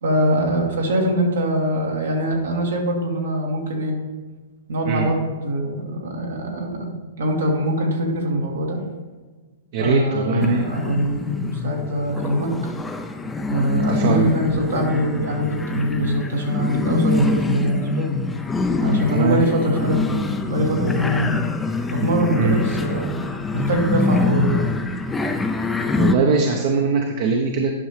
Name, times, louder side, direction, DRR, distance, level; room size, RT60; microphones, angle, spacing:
voice 1, 0.0-3.9 4.7-8.8 9.8-12.5 13.5-18.1 18.8-21.4 21.9-23.1 23.5-24.7, equal, 85° right, -1 dB, 2.1 m, -23 dB
voice 2, 9.7-10.6 13.9-14.3 19.1-19.4 22.3-22.6 25.6-27.7, right 4 dB, 55° right, 2 dB, 0.9 m, -21 dB
sound 1, 10.4-26.2, left 3 dB, 10° left, 0.5 m, -25 dB
10.5 x 5.6 x 3.3 m, 1.4 s
hypercardioid pair, 130°, 0 cm